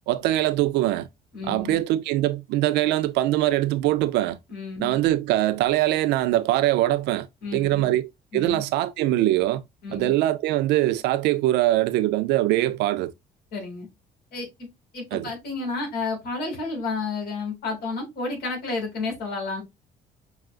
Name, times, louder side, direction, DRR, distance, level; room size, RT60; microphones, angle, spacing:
voice 1, 0.1-1.1 1.5-4.4 4.8-7.3 7.5-9.6 9.9-13.1 15.1-15.3, right 15 dB, 85° right, 0.5 m, -22 dB
voice 2, 1.3-1.8 4.5-5.0 7.4-8.0 8.3-8.6 9.8-10.1 13.5-13.9 14.3-14.7 14.9-19.6, left 3 dB, 65° left, 2.1 m, -31 dB
5.7 x 2.4 x 2.4 m
cardioid pair, 110°, 17 cm